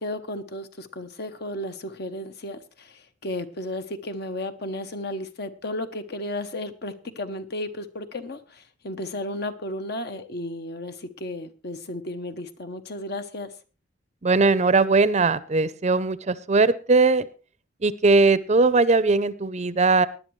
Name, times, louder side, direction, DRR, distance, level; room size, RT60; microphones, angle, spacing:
voice 1, 0.0-13.5, left 1 dB, 55° left, 10 dB, 1.0 m, -34 dB
voice 2, 14.2-17.3 17.8-20.1, right 3 dB, 35° right, 16 dB, 0.6 m, -20 dB
19.0 x 10.5 x 3.1 m, 0.35 s
head